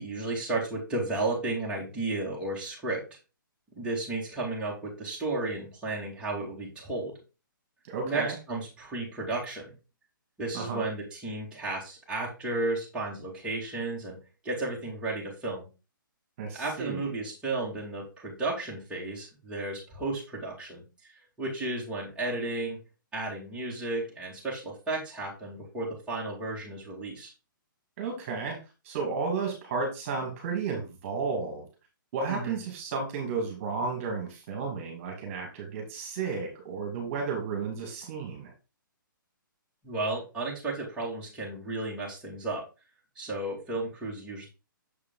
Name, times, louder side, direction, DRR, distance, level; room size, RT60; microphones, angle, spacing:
voice 1, 0.0-3.0 3.8-7.1 8.0-9.7 10.4-14.2 14.4-15.7 16.5-20.8 21.4-22.8 23.1-27.3 32.3-32.6 39.8-42.6 43.2-44.5, right 2 dB, 10° right, -6 dB, 2.5 m, -33 dB
voice 2, 7.9-8.3 10.5-10.8 16.4-17.1 28.0-28.6 28.8-31.7 32.1-38.5, right 4 dB, 35° right, 1 dB, 2.3 m, -33 dB
7.0 x 4.7 x 3.8 m, 0.30 s
hypercardioid pair, 145°, 11 cm